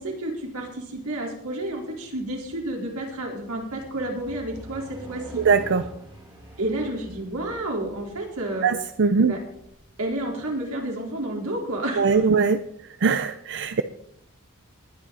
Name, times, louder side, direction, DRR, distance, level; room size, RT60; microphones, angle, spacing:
voice 1, 0.0-5.4 6.6-8.7 9.3-9.4 10.0-12.3, right 1 dB, 85° right, 0 dB, 4.3 m, -30 dB
sound 1, 0.9-1.1 1.6-11.4, right 1 dB, 25° right, 4.7 m, -46 dB
voice 2, 5.4-5.8 8.6-9.3 12.0-12.6 13.0-13.8, right 5 dB, 55° right, 10 dB, 0.6 m, -21 dB
20.0 x 10.0 x 4.2 m, 0.73 s
head